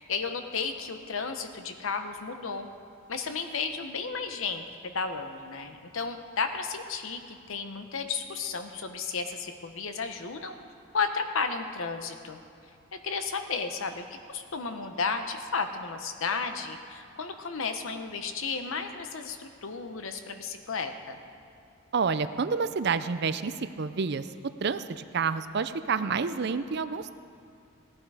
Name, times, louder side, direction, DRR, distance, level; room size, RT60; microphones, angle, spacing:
voice 1, 0.0-2.7 3.1-10.6 10.9-12.4 12.9-21.2, left 5 dB, 70° left, 7 dB, 0.9 m, -33 dB
voice 2, 21.9-24.3 24.6-27.1, right 5 dB, 50° right, 12 dB, 0.5 m, -29 dB
17.5 x 11.5 x 4.8 m, 2.5 s
head